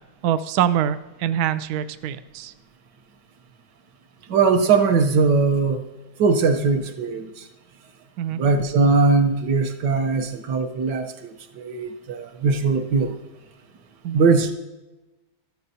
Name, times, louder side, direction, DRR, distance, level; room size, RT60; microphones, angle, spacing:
voice 1, 0.2-2.5 8.2-8.4 14.0-14.3, right 10 dB, 85° right, 12 dB, 0.8 m, -24 dB
voice 2, 4.3-5.8 6.2-7.4 8.4-13.1 14.1-14.5, right 4 dB, 60° right, 6 dB, 1.4 m, -20 dB
13.0 x 13.0 x 2.8 m, 1.1 s
omnidirectional pair, 2.2 m